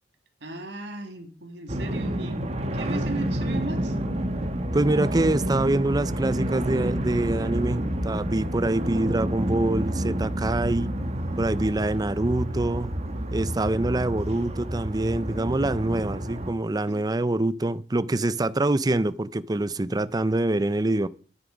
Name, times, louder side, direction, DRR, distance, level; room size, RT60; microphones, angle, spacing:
voice 1, 0.4-2.5 2.7-3.9 16.9-17.1, right 2 dB, 75° right, 2.1 m, -36 dB
sound 1, 1.7-16.5, right 1 dB, 35° right, 1.3 m, -29 dB
voice 2, 4.7-10.9 11.4-13.0 13.3-21.1, right 2 dB, 20° right, 0.5 m, -25 dB
13.0 x 9.3 x 5.2 m
head